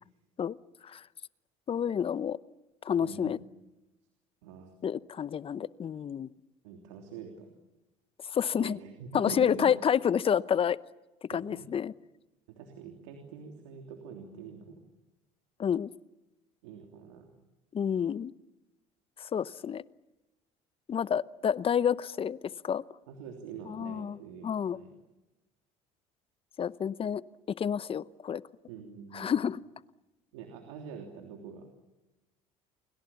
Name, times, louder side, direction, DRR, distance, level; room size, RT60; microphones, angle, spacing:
voice 1, 1.7-2.4 2.8-3.4 4.8-6.3 8.3-8.8 9.1-10.8 11.3-11.9 15.6-15.9 17.7-18.3 19.2-19.8 20.9-22.4 22.6-22.8 23.7-24.2 24.4-24.8 26.6-27.2 27.6-28.4 29.1-29.6, left 8 dB, 35° left, 18 dB, 0.8 m, -29 dB
voice 2, 3.0-3.4 4.4-4.7 6.6-7.5 8.6-9.7 11.3-11.7 12.5-14.8 16.6-17.3 23.1-24.5 24.7-24.9 28.7-29.4 30.3-31.7, right 6 dB, 85° right, 4 dB, 3.2 m, -45 dB
29.5 x 23.0 x 7.2 m, 1.0 s
supercardioid pair, 80°, 15 cm